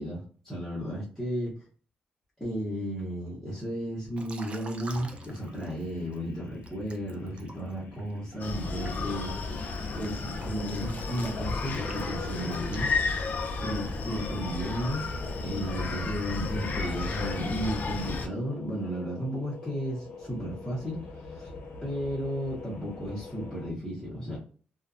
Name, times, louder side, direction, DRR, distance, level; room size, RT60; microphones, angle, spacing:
voice 1, 0.0-1.5 2.4-9.4 9.9-13.3 13.6-15.0 15.4-21.5 21.8-24.4, equal, ahead, -9 dB, 0.8 m, -34 dB
Liquid, 4.2-6.2 6.6-13.6, right 3 dB, 30° right, 0.4 m, -47 dB
sound 1, 4.9-23.7, left 3 dB, 70° left, 0.8 m, -47 dB
Screaming, 8.4-18.3, left 4 dB, 50° left, 0.4 m, -32 dB
2.5 x 2.1 x 2.4 m, 0.42 s
cardioid pair, 150°, 4 cm